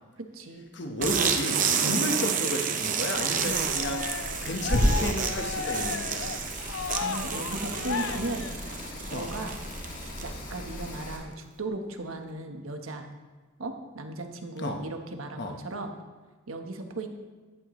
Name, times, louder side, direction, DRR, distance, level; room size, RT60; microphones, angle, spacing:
voice 1, 0.2-0.6 1.9-2.1 7.0-8.5 9.1-9.6 10.2-13.1 13.6-15.9 16.5-17.1, right 2 dB, 90° right, 4 dB, 1.3 m, -36 dB
voice 2, 0.7-6.3 9.1-9.3 14.6-14.8 15.4-15.6, left 1 dB, 55° left, 3 dB, 1.3 m, -30 dB
sound 1, 1.0-10.5, right 6 dB, 40° right, 0.8 m, -30 dB
Rain, 3.5-11.2, left 1 dB, 40° left, 2.1 m, -40 dB
Cheering, 3.6-9.1, left 6 dB, 70° left, 0.5 m, -35 dB
13.5 x 10.0 x 3.2 m, 1.4 s
head